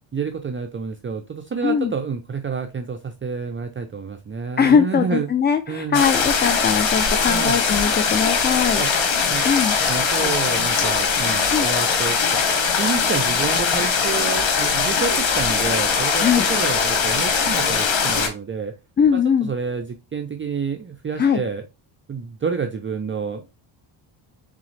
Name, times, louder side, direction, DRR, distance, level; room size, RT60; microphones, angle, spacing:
voice 1, 0.1-5.3 5.7-6.0 7.3-7.6 8.8-8.9 9.3-9.5 9.9-12.4 12.8-18.7 19.1-21.6 22.1-23.5, right 5 dB, 25° right, 5 dB, 0.5 m, -29 dB
voice 2, 4.6-8.8 9.4-9.8 11.5-11.7 16.2-16.5 19.0-19.5 21.2-21.4, left 7 dB, 25° left, 9 dB, 0.3 m, -20 dB
sound 1, 5.9-18.3, left 5 dB, 65° left, 1.5 m, -21 dB
4.0 x 3.7 x 3.2 m, 0.27 s
cardioid pair, 75°, 49 cm